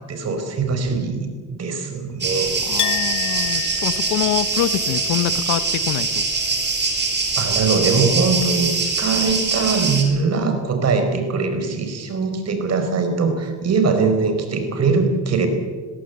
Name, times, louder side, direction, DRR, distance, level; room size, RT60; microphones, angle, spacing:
voice 1, 0.0-2.6 7.4-15.5, right 4 dB, 55° right, 7 dB, 4.6 m, -21 dB
sound 1, 2.2-10.0, right 4 dB, 35° right, 4.4 m, -23 dB
voice 2, 2.6-6.3, left 12 dB, 90° left, 15 dB, 1.0 m, -25 dB
Chink clink, 2.8-8.3 8.6-9.5, left 12 dB, 75° left, 1.7 m, -33 dB
20.5 x 16.5 x 8.1 m, 1.5 s
cardioid pair, 90°, 30 cm